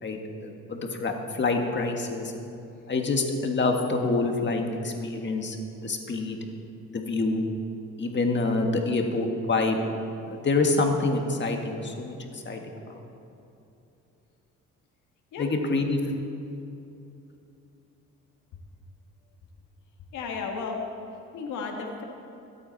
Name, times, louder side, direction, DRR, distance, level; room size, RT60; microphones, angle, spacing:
voice 1, 0.0-2.3 2.9-6.4 6.9-7.5 8.0-9.8 10.3-12.8 15.4-16.0, left 3 dB, 40° left, 3 dB, 1.7 m, -27 dB
voice 2, 20.1-20.8 21.3-22.0, left 5 dB, 85° left, 1 dB, 1.6 m, -33 dB
22.0 x 8.6 x 4.1 m, 2.8 s
cardioid pair, 90°, 30 cm